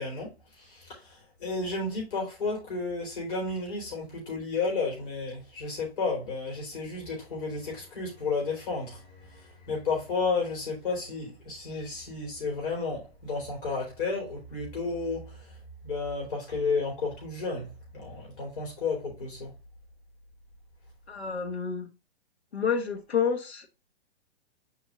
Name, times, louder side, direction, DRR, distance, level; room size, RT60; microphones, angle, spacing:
voice 1, 0.0-19.5, left 4 dB, 55° left, 4.1 m, -32 dB
voice 2, 21.1-21.9 22.5-23.7, left 6 dB, 80° left, 1.4 m, -29 dB
7.6 x 5.1 x 2.4 m
figure-of-eight pair, 120°, 32 cm